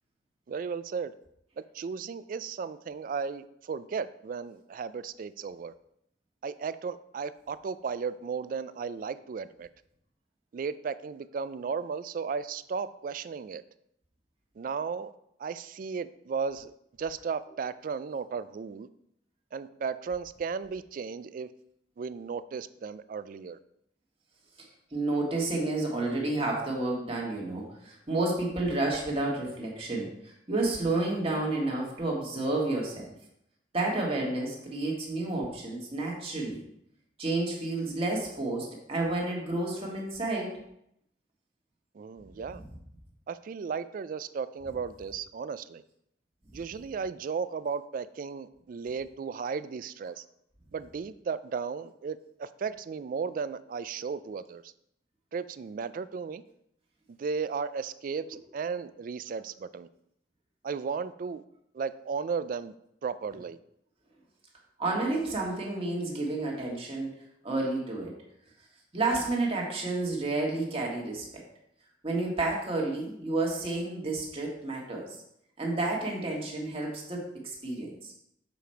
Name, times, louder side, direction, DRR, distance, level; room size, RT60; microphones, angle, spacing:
voice 1, 0.5-1.1 1.7-5.7 6.4-9.7 10.5-13.6 14.6-15.1 15.4-16.7 17.0-18.9 19.5-21.5 22.0-23.6 41.9-42.6 43.3-45.8 46.5-50.2 50.7-54.7 55.3-56.4 57.2-59.9 60.6-61.4 61.7-62.7 63.0-63.6, right 5 dB, 50° right, 14 dB, 0.3 m, -35 dB
voice 2, 24.9-33.1 33.7-36.6 37.2-40.6 42.6-42.7 64.8-67.1 67.4-68.1 68.9-71.4 72.0-75.2 75.6-78.1, right 2 dB, 35° right, -2 dB, 1.7 m, -30 dB
7.1 x 5.1 x 4.4 m, 0.77 s
head